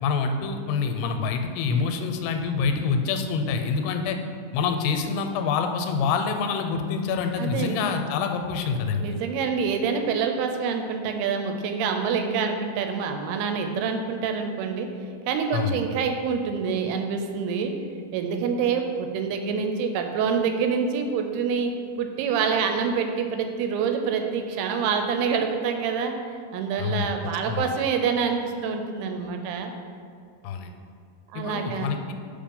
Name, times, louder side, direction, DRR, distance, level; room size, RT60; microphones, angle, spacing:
voice 1, 0.0-4.2 4.5-9.2 15.5-15.8 26.8-27.1 27.5-27.7 30.4-30.7 31.3-32.1, left 5 dB, 90° left, 6 dB, 2.6 m, -26 dB
voice 2, 7.4-7.8 9.0-14.9 15.3-17.7 18.1-21.7 22.0-26.2 26.5-29.7 31.3-32.0, right 6 dB, 85° right, 5 dB, 2.5 m, -26 dB
5.5 x 5.0 x 5.3 m, 2.2 s
omnidirectional pair, 4.6 m